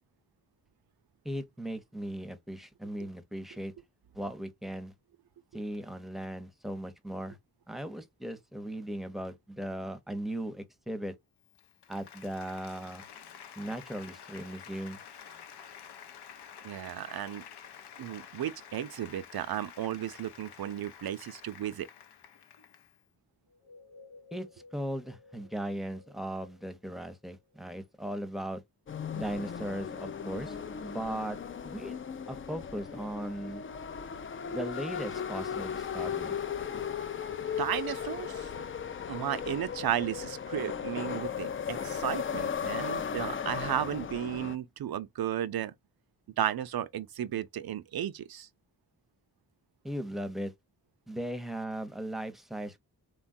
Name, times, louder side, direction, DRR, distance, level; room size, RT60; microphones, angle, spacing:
voice 1, 1.2-3.7 4.1-4.9 5.5-7.4 7.7-11.1 11.9-13.1 13.6-15.0 24.3-24.5 24.7-28.6 29.1-30.6 30.8-31.4 31.6-32.0 32.3-33.6 34.5-36.4 49.8-50.5 51.1-52.8, right 1 dB, ahead, 0.7 m, -37 dB
Applause, 11.4-23.0, left 8 dB, 70° left, 0.6 m, -50 dB
voice 2, 16.6-17.4 18.0-21.9 37.6-38.5 39.1-45.7 46.4-48.5, right 11 dB, 65° right, 0.5 m, -34 dB
sound 1, 23.5-28.1, left 3 dB, 90° left, 1.2 m, -57 dB
sound 2, 28.9-44.6, left 7 dB, 30° left, 0.4 m, -36 dB
3.2 x 2.2 x 2.6 m
cardioid pair, 50°, 41 cm